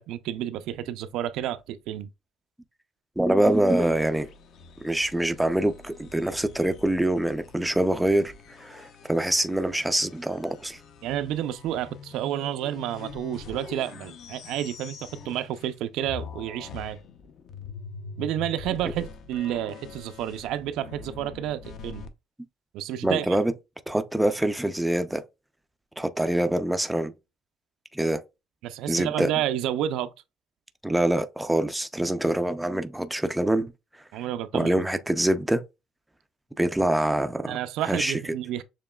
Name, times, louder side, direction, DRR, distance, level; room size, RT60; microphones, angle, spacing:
voice 1, 0.0-2.1 11.0-17.0 18.2-22.0 22.7-23.4 28.6-30.1 34.1-34.8 37.5-38.6, right 11 dB, 70° right, 0.4 m, -30 dB
voice 2, 3.2-4.3 4.8-8.3 8.6-10.8 23.0-23.5 23.9-25.2 26.0-27.1 27.9-28.2 28.9-29.3 30.8-33.7 34.5-35.6 36.6-37.6 37.8-38.2, right 1 dB, 5° right, 0.3 m, -25 dB
sound 1, 3.5-15.8 16.0-22.1, left 5 dB, 50° left, 0.6 m, -44 dB
6.9 x 3.0 x 2.2 m
cardioid pair, 170°, 0 cm